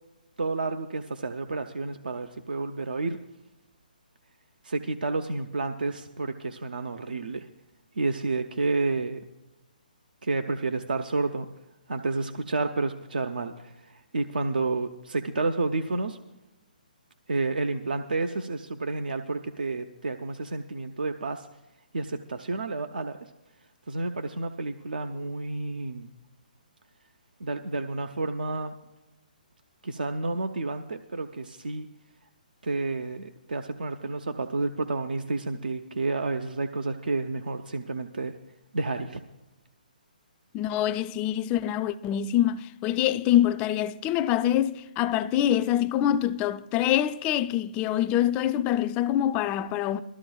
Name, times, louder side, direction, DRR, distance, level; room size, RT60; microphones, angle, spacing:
voice 1, 0.4-3.2 4.6-7.5 8.0-9.2 10.2-11.5 11.9-16.2 17.3-21.5 21.9-23.3 23.9-26.1 27.4-28.7 29.8-31.9 32.6-38.4 38.7-39.2, right 3 dB, 80° right, 0.7 m, -30 dB
voice 2, 40.5-50.0, left 11 dB, 25° left, 0.4 m, -25 dB
19.0 x 13.5 x 2.3 m
figure-of-eight pair, 135°, 5 cm